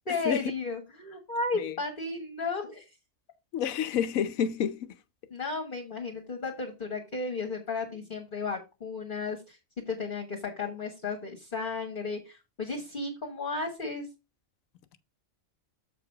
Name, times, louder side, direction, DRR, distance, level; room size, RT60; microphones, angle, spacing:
voice 1, 0.0-2.9 5.3-9.6 9.9-14.1, left 3 dB, 40° left, 1.5 m, -34 dB
voice 2, 3.5-4.9, left 8 dB, 80° left, 1.1 m, -29 dB
7.4 x 4.9 x 4.6 m
omnidirectional pair, 1.4 m